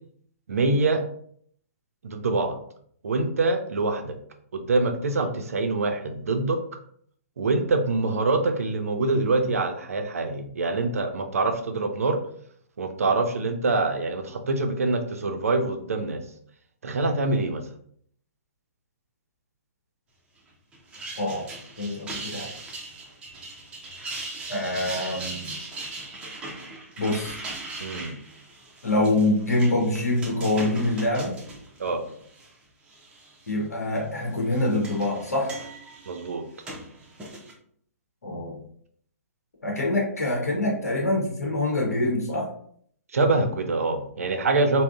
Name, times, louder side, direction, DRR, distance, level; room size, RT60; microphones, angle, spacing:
voice 1, 0.5-1.0 2.0-2.6 3.0-4.1 4.5-6.6 7.4-12.2 12.8-16.2 16.8-17.6 27.8-28.1 31.8-32.0 36.1-36.4 43.1-44.8, right 3 dB, 65° right, 6 dB, 0.5 m, -25 dB
sound 1, 20.7-32.5 32.9-33.5 34.3-37.5, right 2 dB, 10° right, 0.5 m, -39 dB
voice 2, 21.2-21.5 21.8-22.5 24.5-25.5 27.0-27.4 28.8-31.4 33.5-35.5 38.2-38.6 39.6-42.5, left 2 dB, 75° left, -1 dB, 0.9 m, -25 dB
3.5 x 2.1 x 2.3 m, 0.62 s
figure-of-eight pair, 125°, 8 cm